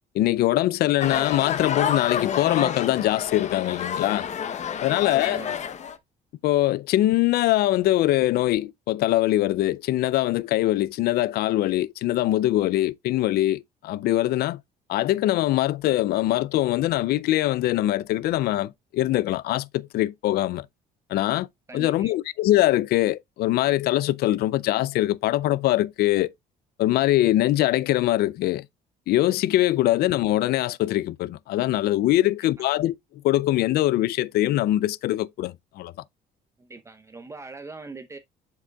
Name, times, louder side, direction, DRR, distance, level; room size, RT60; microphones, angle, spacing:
voice 1, 0.1-4.3 4.8-5.4 6.4-14.6 14.9-20.7 21.1-21.5 21.7-26.3 26.8-28.7 29.1-32.9 33.2-35.9, left 15 dB, 65° left, 0.4 m, -23 dB
sound 1, 1.0-6.0, left 8 dB, 45° left, 0.8 m, -29 dB
voice 2, 5.0-5.6 21.7-22.1 36.6-38.2, right 3 dB, 15° right, 0.7 m, -41 dB
7.4 x 6.5 x 2.2 m
cardioid pair, 110°, 17 cm